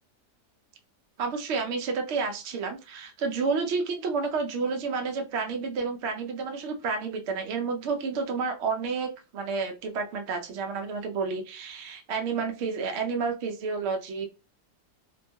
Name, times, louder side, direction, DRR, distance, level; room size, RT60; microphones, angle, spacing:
voice 1, 1.2-14.3, right 4 dB, 80° right, 4 dB, 0.6 m, -30 dB
2.8 x 2.3 x 2.7 m, 0.29 s
omnidirectional pair, 1.8 m